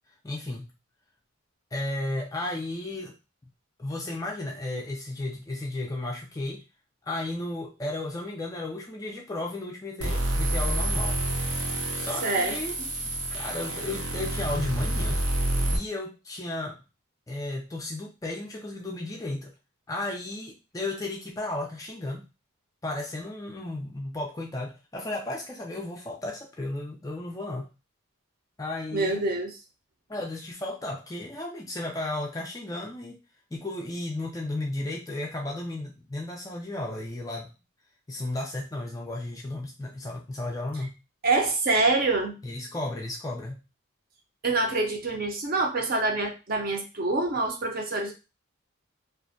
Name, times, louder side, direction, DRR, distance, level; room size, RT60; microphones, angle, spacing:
voice 1, 0.2-0.7 1.7-3.1 3.8-6.6 7.1-11.2 11.9-12.8 13.0-15.2 15.7-16.8 17.3-19.5 19.9-22.3 22.8-27.7 28.6-29.3 30.1-33.2 33.5-37.5 38.1-40.9 42.4-43.6, left 2 dB, 15° left, 0 dB, 0.3 m, -34 dB
sound 1, 10.0-15.8, right 1 dB, 80° right, 0.7 m, -28 dB
voice 2, 12.2-12.6 28.9-29.5 41.2-42.4 44.4-48.1, right 3 dB, 45° right, 2 dB, 0.5 m, -26 dB
2.4 x 2.1 x 2.5 m, 0.28 s
head